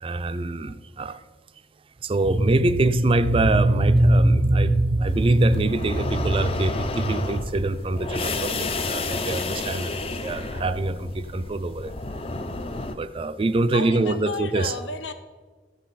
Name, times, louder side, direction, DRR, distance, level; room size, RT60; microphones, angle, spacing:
voice 1, 0.0-1.2 2.0-11.9 12.9-14.7, right 2 dB, 30° right, 0.4 m, -22 dB
sound 1, 5.1-12.9, left 3 dB, 30° left, 0.5 m, -31 dB
voice 2, 13.7-15.1, left 2 dB, 75° left, 0.8 m, -32 dB
13.5 x 8.5 x 4.1 m
head